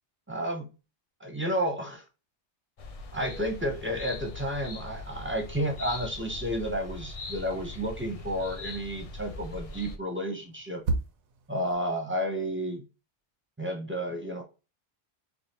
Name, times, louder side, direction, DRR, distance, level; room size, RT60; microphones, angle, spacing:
voice 1, 0.3-0.7 1.2-2.0 3.1-10.8 11.5-12.8 13.6-14.4, equal, 10° right, 2 dB, 0.7 m, -31 dB
sound 1, 2.8-10.0, left 3 dB, 50° left, 0.4 m, -41 dB
sound 2, 6.7-11.8, right 3 dB, 75° right, 1.0 m, -38 dB
4.9 x 2.5 x 2.9 m, 0.30 s
omnidirectional pair, 1.2 m